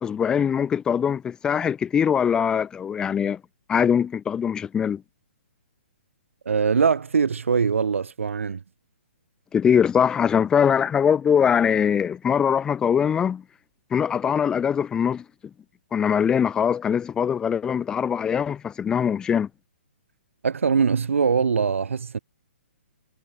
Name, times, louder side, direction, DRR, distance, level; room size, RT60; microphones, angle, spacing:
voice 1, 0.0-3.4 3.7-5.0 9.5-13.4 13.9-15.2 15.9-19.5, left 7 dB, 10° left, 1.2 m, -22 dB
voice 2, 6.4-8.6 20.4-22.2, right 6 dB, 85° right, 4.3 m, -22 dB
hypercardioid pair, 155°, 7 cm